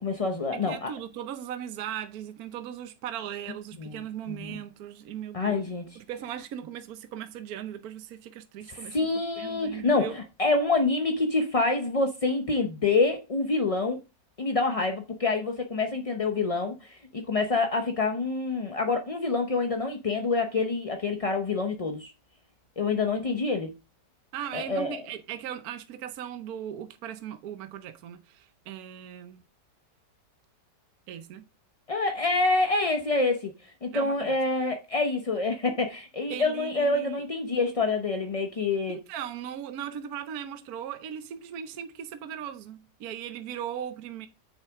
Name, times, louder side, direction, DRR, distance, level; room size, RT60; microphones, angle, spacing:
voice 1, 0.0-0.9 3.8-4.0 4.3-4.6 5.3-5.9 8.7-14.0 14.4-22.1 22.8-23.7 24.5-25.0 31.9-33.5 33.8-39.0, left 3 dB, 40° left, 0.5 m, -27 dB
voice 2, 0.5-5.6 5.9-9.0 9.4-10.2 24.3-29.4 31.1-31.4 33.9-34.4 36.3-37.2 38.9-44.3, right 9 dB, 65° right, 1.2 m, -38 dB
8.8 x 6.7 x 3.5 m
omnidirectional pair, 1.9 m